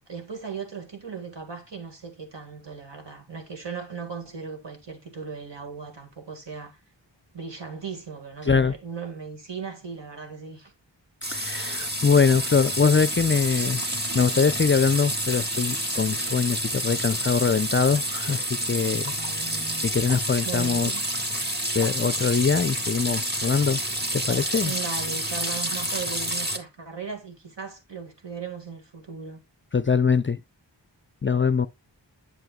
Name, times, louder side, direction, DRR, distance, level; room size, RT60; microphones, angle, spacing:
voice 1, 0.1-6.8 7.3-10.7 19.2-19.9 20.4-21.0 24.6-29.4, right 5 dB, 70° right, 2.0 m, -37 dB
voice 2, 8.4-8.7 11.3-13.9 14.1-19.1 19.8-20.9 21.7-23.8 24.1-24.7 29.7-30.4 31.2-31.7, left 5 dB, 30° left, 0.4 m, -23 dB
sound 1, 11.2-26.6, equal, 25° right, 1.7 m, -29 dB
7.8 x 7.7 x 2.3 m
wide cardioid pair, 45°, 44 cm